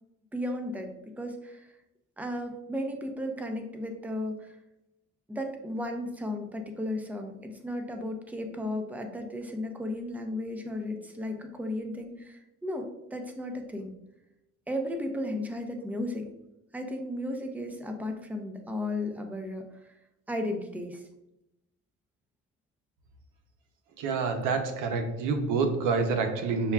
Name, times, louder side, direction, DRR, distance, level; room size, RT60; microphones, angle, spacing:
voice 1, 0.3-0.9 1.2-1.7 2.2-4.6 5.3-13.9 14.7-16.3 16.7-19.9 20.3-21.1, left 1 dB, 5° right, 4 dB, 0.6 m, -34 dB
voice 2, 24.0-26.7, right 4 dB, 85° right, 6 dB, 0.7 m, -27 dB
6.8 x 2.3 x 2.3 m, 0.87 s
cardioid pair, 90°, 30 cm